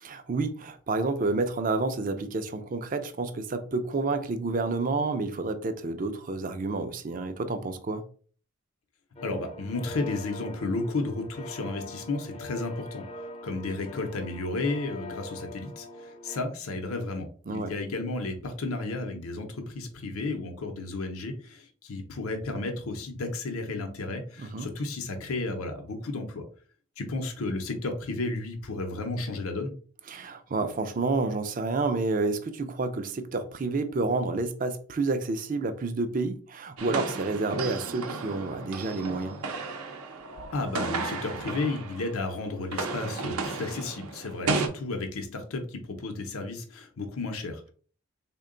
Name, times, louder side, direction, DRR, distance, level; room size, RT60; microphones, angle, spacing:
voice 1, 0.0-8.0 17.5-17.7 24.4-24.7 30.1-39.4, right 3 dB, 40° right, 0.4 m, -29 dB
voice 2, 9.2-26.4 27.0-29.7 40.5-47.7, left 2 dB, 80° left, 0.6 m, -33 dB
sound 1, 9.2-16.4, left 1 dB, 25° left, 0.4 m, -43 dB
sound 2, 36.8-42.2 42.5-44.7, right 3 dB, 85° right, 0.6 m, -33 dB
3.6 x 2.2 x 3.7 m
head